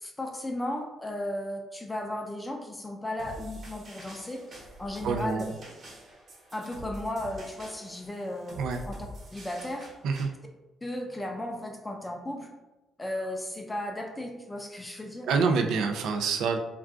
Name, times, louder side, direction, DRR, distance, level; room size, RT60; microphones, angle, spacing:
voice 1, 0.0-5.5 6.5-9.0 9.3-9.9 10.8-12.5 13.0-15.3, left 1 dB, 15° left, 2 dB, 0.4 m, -35 dB
sound 1, 3.2-10.2, right 1 dB, 55° right, 1.1 m, -45 dB
voice 2, 5.0-5.5 8.6-8.8 10.0-10.3 15.2-16.6, right 5 dB, 80° right, 5 dB, 0.3 m, -26 dB
2.3 x 2.3 x 3.6 m, 1.1 s
cardioid pair, 90°, 0 cm